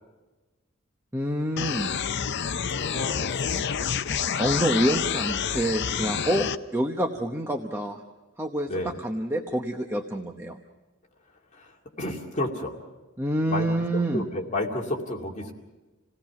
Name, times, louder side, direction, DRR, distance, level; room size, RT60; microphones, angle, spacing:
voice 1, 1.1-1.9 4.3-8.0 8.4-10.6 13.2-14.3, right 1 dB, 10° right, 2 dB, 0.9 m, -27 dB
sound 1, 1.6-6.6, left 7 dB, 55° left, 0.6 m, -28 dB
voice 2, 2.7-3.5 8.7-8.9 11.5-12.8 13.5-13.7 13.9-15.5, left 1 dB, 35° left, 0 dB, 2.4 m, -31 dB
28.0 x 17.5 x 5.9 m, 1.2 s
head